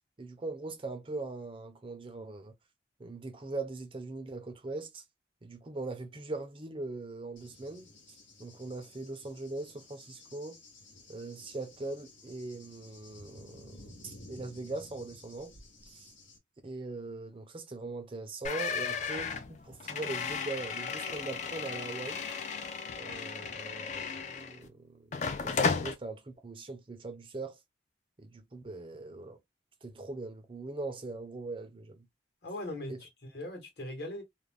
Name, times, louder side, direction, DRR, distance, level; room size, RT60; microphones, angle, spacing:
voice 1, 0.2-2.5 3.0-5.0 5.4-7.9 8.4-10.6 11.1-15.5 15.9-16.1 16.6-22.2 23.0-25.1 25.4-27.6 28.2-29.4 29.8-32.0 32.9-33.0, right 2 dB, 25° right, 0.4 m, -41 dB
Cricket / Thunder, 7.4-16.4, left 2 dB, 85° left, 0.9 m, -54 dB
sound 1, 18.4-24.7 25.1-25.9, left 5 dB, 40° left, 0.3 m, -34 dB
voice 2, 32.4-34.2, left 1 dB, 55° left, 1.1 m, -40 dB
2.5 x 2.0 x 3.1 m
head